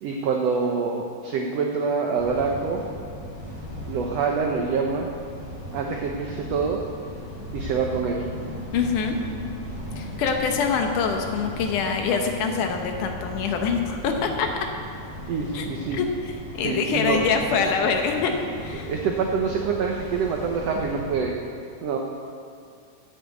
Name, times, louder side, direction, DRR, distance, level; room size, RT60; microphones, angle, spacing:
voice 1, 0.0-2.8 3.9-5.1 5.7-6.8 7.5-8.2 15.3-16.0 16.6-17.2 18.9-21.4 21.8-22.0, right 5 dB, 90° right, 1 dB, 1.4 m, -26 dB
sound 1, 2.2-21.2, equal, 20° left, 3.7 m, -37 dB
voice 2, 8.7-9.2 10.0-14.5 15.5-15.7 15.9-18.3 18.6-18.9, left 5 dB, 70° left, 4 dB, 2.3 m, -25 dB
9.1 x 8.5 x 8.2 m, 2.3 s
omnidirectional pair, 4.1 m